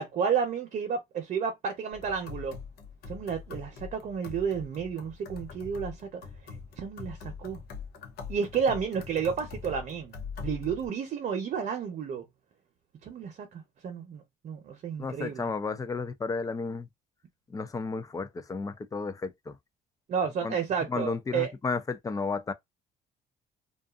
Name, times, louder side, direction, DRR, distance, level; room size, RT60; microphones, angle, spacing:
voice 1, 0.0-2.6 3.1-6.2 6.8-7.6 8.3-10.2 10.4-12.2 13.0-15.5 20.1-21.5, right 6 dB, 50° right, 0.8 m, -31 dB
sound 1, 1.9-10.9, left 5 dB, 75° left, 0.7 m, -43 dB
voice 2, 15.0-16.9 17.5-19.6 20.4-20.6 20.9-22.5, left 4 dB, 20° left, 0.4 m, -33 dB
2.5 x 2.4 x 2.4 m
cardioid pair, 110°, 17 cm